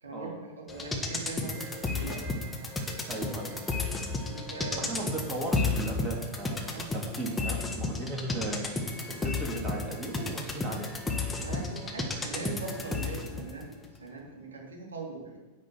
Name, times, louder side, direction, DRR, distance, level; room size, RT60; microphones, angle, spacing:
voice 1, 0.0-2.4 4.2-4.9 6.6-6.9 11.4-13.7 14.0-15.3, right 3 dB, 70° right, -1 dB, 2.8 m, -41 dB
sound 1, 0.7-13.5 13.8-13.9, left 3 dB, 10° left, 1.6 m, -33 dB
voice 2, 3.1-3.6 4.7-10.9, right 2 dB, 15° right, -2 dB, 2.7 m, -37 dB
10.5 x 5.3 x 7.5 m, 1.1 s
figure-of-eight pair, 90°, 0 cm